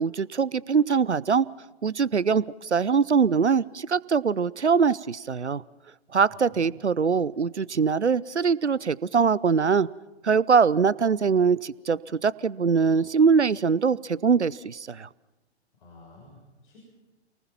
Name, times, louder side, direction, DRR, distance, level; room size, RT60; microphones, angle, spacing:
voice 1, 0.0-1.5 1.8-5.6 6.1-9.9 10.2-15.1, right 5 dB, 80° right, 22 dB, 0.7 m, -23 dB
voice 2, 15.8-16.8, left 3 dB, 45° left, -2 dB, 6.9 m, -50 dB
29.0 x 19.5 x 5.9 m, 1.1 s
figure-of-eight pair, 125°, 34 cm